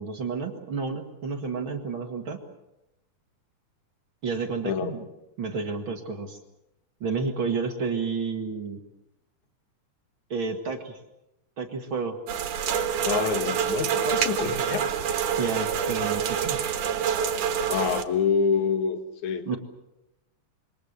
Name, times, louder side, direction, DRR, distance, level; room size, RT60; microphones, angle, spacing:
voice 1, 0.0-2.4 4.2-5.0 5.4-6.4 7.0-8.8 10.3-11.0 11.6-12.2 14.1-14.2 15.4-16.6 19.5-19.6, right 4 dB, 45° right, 5 dB, 2.4 m, -30 dB
sound 1, 12.3-18.0, right 8 dB, 80° right, 3.1 m, -27 dB
voice 2, 13.0-14.9 17.7-19.6, left 6 dB, 70° left, 7 dB, 3.1 m, -26 dB
27.0 x 24.0 x 6.7 m, 0.90 s
omnidirectional pair, 3.5 m